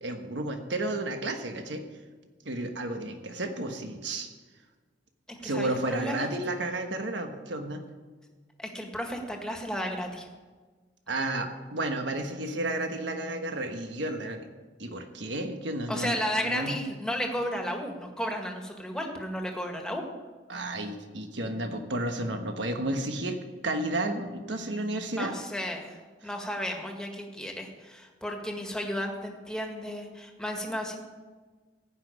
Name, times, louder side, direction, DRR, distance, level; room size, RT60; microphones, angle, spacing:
voice 1, 0.0-1.8 2.4-4.3 5.4-7.8 11.1-14.5 14.8-16.2 16.4-16.8 20.5-25.3, right 1 dB, 85° right, 5 dB, 1.3 m, -32 dB
voice 2, 5.3-6.3 8.6-10.3 15.9-20.1 25.2-31.0, equal, 5° left, 2 dB, 1.7 m, -33 dB
15.0 x 5.9 x 9.5 m, 1.4 s
head